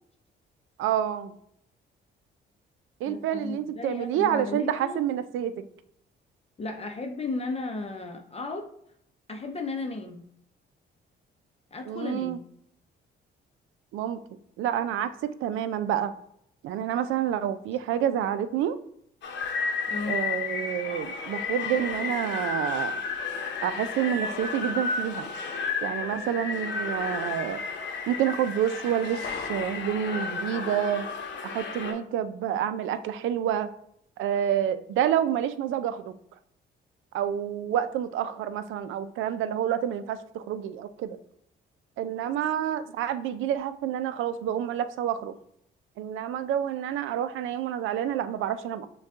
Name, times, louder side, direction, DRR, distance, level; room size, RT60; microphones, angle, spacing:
voice 1, 0.8-1.3 3.0-5.7 11.9-12.4 13.9-14.2 14.6-15.1 15.4-16.1 16.6-18.8 20.1-23.0 23.6-25.3 25.8-27.6 28.1-31.1 31.4-33.7 34.2-36.2 37.1-41.2 42.0-45.4 46.0-48.9, right 10 dB, 85° right, 12 dB, 0.4 m, -28 dB
voice 2, 3.1-5.1 6.6-8.7 9.3-10.3 11.7-12.4 19.9-20.2, left 3 dB, 30° left, 3 dB, 0.7 m, -34 dB
sound 1, 19.2-31.9, left 4 dB, 65° left, 0.8 m, -32 dB
6.4 x 2.4 x 3.5 m, 0.70 s
cardioid pair, 90°, 20 cm